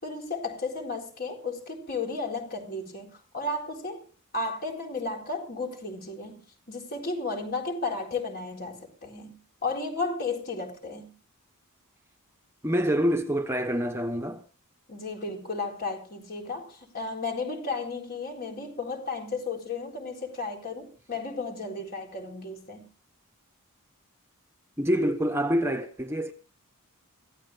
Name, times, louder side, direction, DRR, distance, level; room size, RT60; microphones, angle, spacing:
voice 1, 0.0-3.1 3.3-4.0 4.3-6.4 6.7-9.3 9.6-11.1 14.9-22.9, left 3 dB, 45° left, 4.1 m, -33 dB
voice 2, 12.6-14.4 24.8-26.3, equal, 10° right, 1.1 m, -26 dB
25.0 x 15.5 x 2.5 m
head